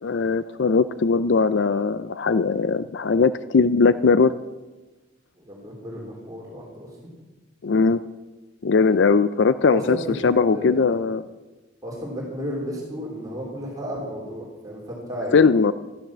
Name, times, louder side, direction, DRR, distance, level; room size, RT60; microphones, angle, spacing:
voice 1, 0.0-4.4 7.6-8.0 8.6-10.0 10.2-11.2 15.3-15.7, left 4 dB, 60° left, 14 dB, 0.5 m, -19 dB
voice 2, 5.3-7.0 9.7-11.0 11.8-15.4, equal, 20° right, -3 dB, 3.4 m, -33 dB
13.5 x 13.5 x 7.4 m, 1.2 s
head